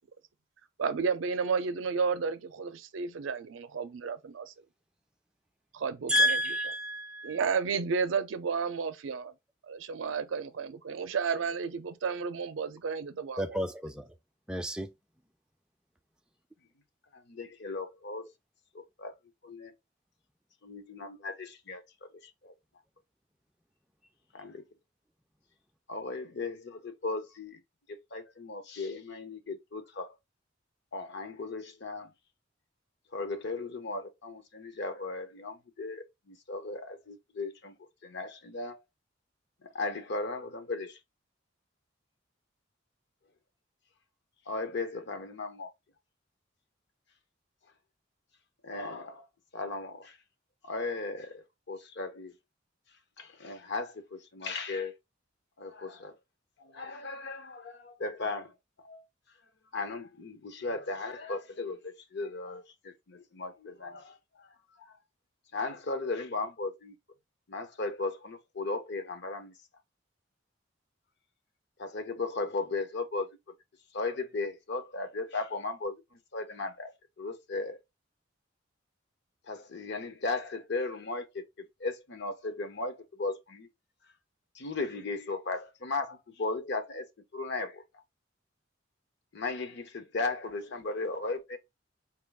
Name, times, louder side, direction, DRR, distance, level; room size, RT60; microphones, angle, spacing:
voice 1, 0.8-4.5 5.7-6.4 7.2-9.3 9.7-13.4, right 5 dB, 80° right, 0.5 m, -32 dB
voice 2, 6.1-7.4 13.4-14.1 14.5-14.9, equal, 5° right, 0.4 m, -29 dB
voice 3, 17.1-18.3 18.7-19.1 19.4-19.7 20.6-22.1 22.4-22.5 24.3-24.6 25.9-27.6 27.9-30.2 30.9-32.1 33.1-37.8 38.0-38.8 39.6-41.0 44.5-45.7 48.6-49.3 49.5-50.2 50.6-52.3 53.2-54.9 55.6-56.2 56.6-58.5 58.8-59.1 59.7-64.5 64.8-65.0 65.5-66.9 67.5-69.5 71.8-73.3 73.9-76.9 77.2-77.8 79.5-83.7 84.5-87.1 87.3-87.8 89.3-91.6, left 3 dB, 60° left, 0.7 m, -36 dB
4.4 x 2.4 x 3.5 m
head